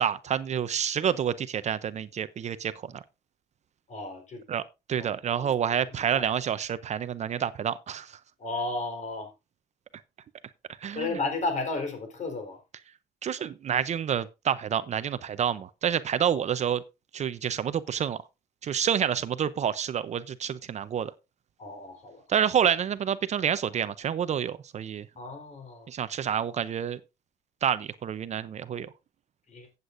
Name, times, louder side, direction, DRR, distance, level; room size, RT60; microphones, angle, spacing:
voice 1, 0.0-2.7 4.5-4.6 4.9-8.1 10.8-11.1 13.2-16.8 17.1-18.2 18.6-21.1 22.3-25.1 25.9-27.0 27.6-28.9, right 8 dB, 40° right, 0.6 m, -28 dB
voice 2, 3.9-4.4 5.0-5.5 5.8-6.3 8.4-9.3 10.9-12.6 16.3-16.4 21.6-22.2 25.2-25.9 29.5-29.7, left 3 dB, 45° left, 3.9 m, -34 dB
15.5 x 8.2 x 2.6 m
cardioid pair, 110°, 17 cm